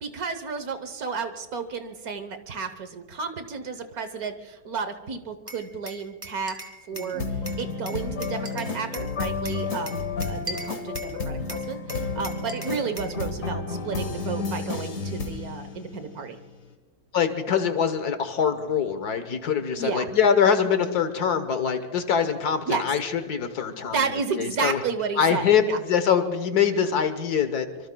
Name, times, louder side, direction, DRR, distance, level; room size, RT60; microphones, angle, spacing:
voice 1, 0.0-6.6 6.9-7.2 7.6-16.4 19.8-20.1 22.7-22.9 23.9-25.8, right 5 dB, 70° right, 9 dB, 1.5 m, -32 dB
Glass, 5.5-7.1 7.5-9.1 9.5-11.2 11.5-13.2, right 1 dB, 15° right, 1.9 m, -39 dB
sound 1, 6.9-16.5, left 4 dB, 60° left, 2.0 m, -31 dB
voice 2, 17.1-24.0 24.4-24.8 25.2-27.7, left 7 dB, 80° left, 9 dB, 1.6 m, -23 dB
25.0 x 25.0 x 2.3 m, 1.2 s
omnidirectional pair, 1.6 m